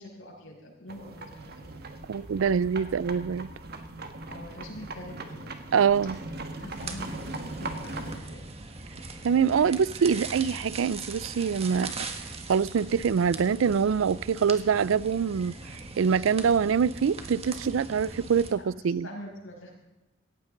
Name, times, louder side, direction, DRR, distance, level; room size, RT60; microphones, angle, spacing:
voice 1, 0.0-1.7 2.8-2.9 4.3-5.5 6.5-8.5 18.6-18.7 19.0-19.7, equal, 85° left, 6.4 m, -44 dB
sound 1, 0.9-8.2, right 2 dB, 55° right, 1.4 m, -39 dB
voice 2, 2.1-3.5 5.7-6.2 9.2-11.9 12.5-15.6 16.0-19.1, right 6 dB, 90° right, 0.4 m, -24 dB
sound 2, 6.7-18.5, right 3 dB, 30° right, 1.5 m, -40 dB
18.0 x 15.0 x 3.9 m
head